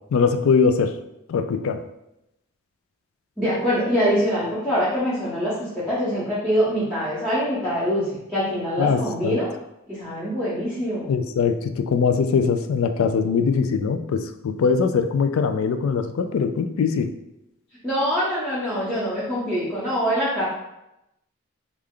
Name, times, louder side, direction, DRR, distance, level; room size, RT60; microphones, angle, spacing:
voice 1, 0.1-0.9 1.3-1.8 8.8-9.4 11.1-17.1, left 5 dB, 80° left, 8 dB, 0.3 m, -21 dB
voice 2, 3.4-8.0 8.3-9.5 9.9-11.1 17.8-20.5, equal, ahead, -11 dB, 0.8 m, -24 dB
3.3 x 2.4 x 3.6 m, 0.87 s
head